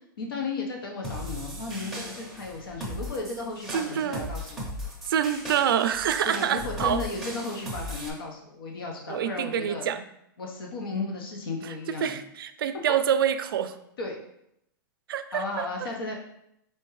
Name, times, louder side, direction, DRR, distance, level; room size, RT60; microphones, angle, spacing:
voice 1, 0.2-4.7 6.2-9.9 10.4-12.2 14.0-14.2 15.3-16.1, left 3 dB, 90° left, 1 dB, 0.9 m, -34 dB
sound 1, 1.0-8.1, equal, ahead, 0.6 m, -37 dB
voice 2, 3.7-4.3 5.0-7.0 9.1-10.0 11.6-13.7 15.1-15.4, right 9 dB, 85° right, 11 dB, 0.4 m, -26 dB
4.4 x 3.4 x 3.1 m, 0.77 s
supercardioid pair, 165°, 12 cm